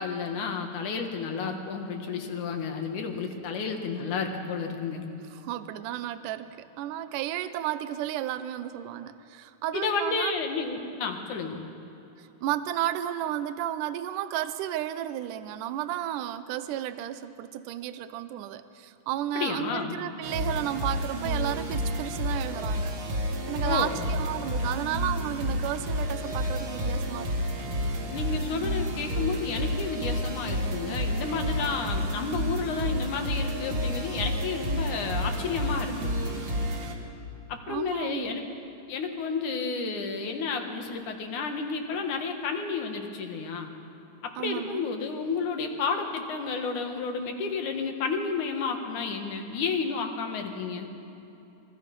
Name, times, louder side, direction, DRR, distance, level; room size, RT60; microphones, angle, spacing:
voice 1, 0.0-5.1 9.7-11.6 19.3-20.0 23.6-24.0 28.1-36.2 37.5-38.4 38.9-43.7 44.2-50.9, left 5 dB, 70° left, 4 dB, 3.1 m, -31 dB
voice 2, 5.3-10.3 12.2-22.9 23.5-27.3 37.7-38.5 44.4-44.9, right 12 dB, 80° right, 12 dB, 2.3 m, -33 dB
sound 1, 20.2-36.9, equal, 45° right, 2.6 m, -30 dB
28.0 x 23.0 x 5.4 m, 2.9 s
omnidirectional pair, 3.7 m